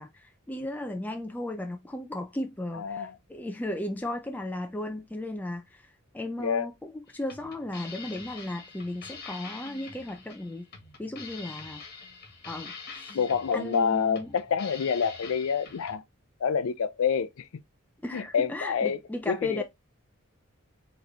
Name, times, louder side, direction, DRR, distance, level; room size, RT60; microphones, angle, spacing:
voice 1, 0.0-10.7 11.0-11.8 12.5-12.7 13.0-13.2 13.5-14.4 18.0-19.6, left 1 dB, 10° left, 0.4 m, -35 dB
voice 2, 2.7-3.1 6.4-6.7 13.1-16.0 16.4-17.5 18.1-19.0 19.3-19.6, left 6 dB, 75° left, 0.4 m, -27 dB
sound 1, 7.1-16.0, left 5 dB, 45° left, 1.4 m, -45 dB
4.7 x 3.1 x 3.3 m
head